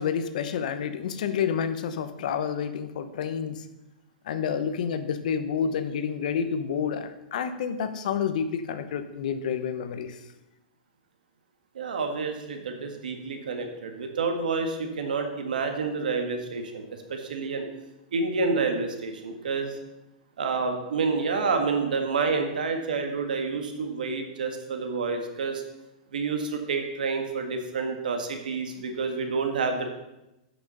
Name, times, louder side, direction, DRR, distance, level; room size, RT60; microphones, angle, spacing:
voice 1, 0.0-3.6 4.2-10.2, left 7 dB, 65° left, 10 dB, 0.9 m, -29 dB
voice 2, 11.7-17.7 18.1-19.8 20.4-25.6 26.1-29.9, right 4 dB, 90° right, 5 dB, 1.6 m, -29 dB
8.7 x 6.1 x 5.4 m, 0.94 s
hypercardioid pair, 140°, 4 cm